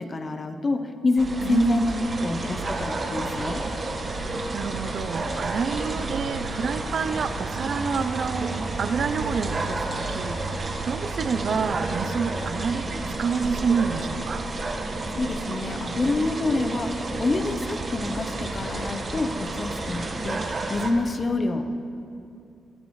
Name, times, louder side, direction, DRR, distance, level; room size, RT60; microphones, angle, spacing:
voice 1, 0.0-3.6 15.1-21.7, left 2 dB, 35° left, 7 dB, 1.0 m, -27 dB
sound 1, 1.2-20.9, right 2 dB, 35° right, 1.5 m, -31 dB
voice 2, 1.4-1.9 4.0-14.5, right 6 dB, 55° right, 11 dB, 0.6 m, -28 dB
22.0 x 15.0 x 3.3 m, 2.6 s
cardioid pair, 125°, 0 cm